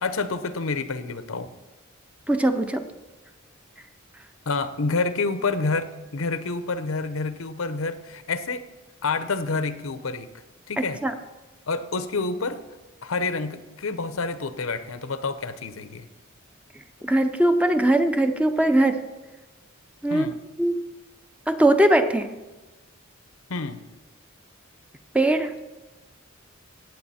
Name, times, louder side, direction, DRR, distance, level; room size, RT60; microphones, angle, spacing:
voice 1, 0.0-1.5 4.5-8.7 9.0-10.3 10.7-11.0 11.7-12.6 13.0-16.1 20.1-20.4 23.5-23.8, left 3 dB, 80° left, 12 dB, 0.8 m, -28 dB
voice 2, 2.3-2.9 10.8-11.1 17.0-19.0 20.0-20.3 20.6-20.8 21.5-22.3 25.1-25.5, right 1 dB, 5° right, 8 dB, 0.6 m, -20 dB
17.5 x 8.2 x 4.3 m, 1.2 s
head